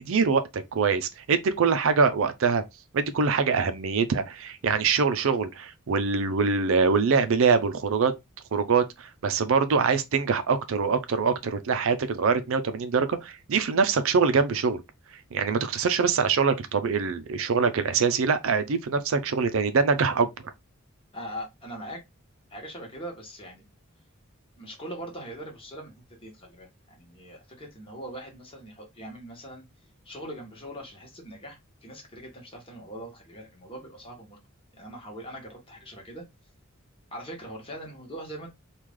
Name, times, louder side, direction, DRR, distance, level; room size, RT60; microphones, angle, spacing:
voice 1, 0.0-2.6 2.9-8.1 8.5-14.8 15.3-20.3, right 5 dB, 70° right, 0.5 m, -24 dB
voice 2, 21.1-22.0 22.5-23.6 24.6-29.6 30.0-34.4 34.7-36.2 37.1-38.5, right 1 dB, 25° left, 1.2 m, -41 dB
3.1 x 2.3 x 3.5 m
head